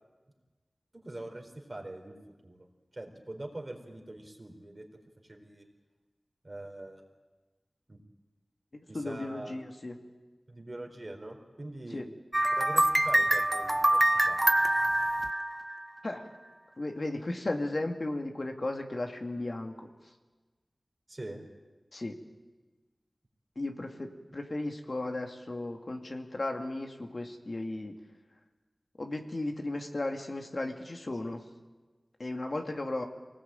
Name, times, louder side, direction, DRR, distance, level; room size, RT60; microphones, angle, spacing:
voice 1, 0.9-2.2 2.4-2.6 2.9-4.8 5.2-5.7 6.4-7.0 7.9-8.0 8.9-9.6 10.5-12.1 12.5-14.4 21.1-21.5, right 1 dB, 40° right, 3 dB, 4.3 m, -43 dB
voice 2, 8.9-10.0 11.9-12.1 16.0-16.2 16.8-19.9 21.9-22.2 23.6-27.9 29.0-31.4 32.2-33.1, left 2 dB, 60° left, 3 dB, 2.3 m, -35 dB
sound 1, 12.3-16.1, right 1 dB, 25° right, 0.7 m, -25 dB
24.0 x 19.0 x 9.1 m, 1.3 s
wide cardioid pair, 45°, 0 cm